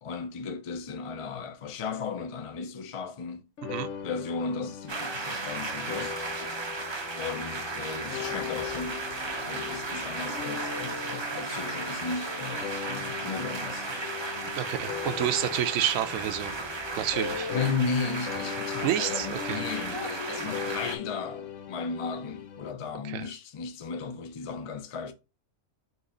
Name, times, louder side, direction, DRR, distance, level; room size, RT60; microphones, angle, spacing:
voice 1, 0.0-3.4 4.0-6.3 7.2-9.0 9.4-14.1 17.5-25.1, left 5 dB, 45° left, 0.4 m, -35 dB
sound 1, 3.6-18.0 18.3-22.7, left 8 dB, 75° left, 1.1 m, -39 dB
sound 2, 4.9-21.0, right 3 dB, 40° right, 0.4 m, -35 dB
voice 2, 14.6-16.5 17.0-17.5 18.8-19.6 23.0-23.3, right 11 dB, 85° right, 1.0 m, -29 dB
4.1 x 3.0 x 3.7 m
omnidirectional pair, 1.4 m